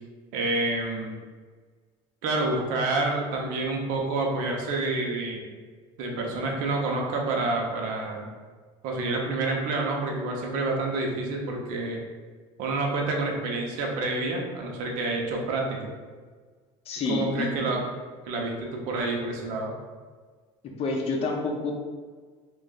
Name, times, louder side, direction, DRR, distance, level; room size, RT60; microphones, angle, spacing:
voice 1, 0.3-1.1 2.2-5.5 6.0-8.3 8.8-12.0 12.6-15.9 17.1-17.8 18.3-19.7, right 2 dB, 75° right, 0 dB, 0.8 m, -28 dB
voice 2, 16.9-17.7 20.6-21.7, left 3 dB, 45° left, 1 dB, 0.7 m, -29 dB
3.2 x 2.5 x 3.9 m, 1.5 s
cardioid pair, 115°, 14 cm